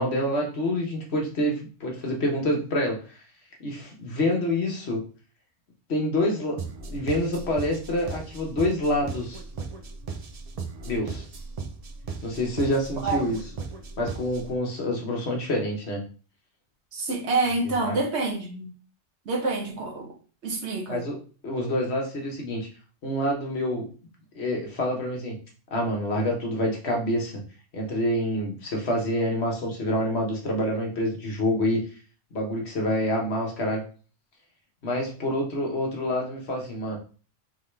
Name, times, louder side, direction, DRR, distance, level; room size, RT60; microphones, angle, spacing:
voice 1, 0.0-3.2 3.6-5.0 5.9-9.4 10.8-11.3 12.2-13.4 14.0-16.0 17.8-18.0 20.9-22.7 23.0-23.9 24.3-25.4 25.7-27.4 27.7-31.8 32.3-33.8 34.8-37.0, left 1 dB, 65° left, 0 dB, 1.4 m, -27 dB
sound 1, 6.6-14.6, right 4 dB, 45° right, 0.5 m, -37 dB
voice 2, 16.9-18.7 19.3-20.1 20.4-21.0, right 3 dB, 70° right, 2 dB, 1.3 m, -27 dB
3.8 x 3.7 x 3.3 m, 0.38 s
omnidirectional pair, 1.2 m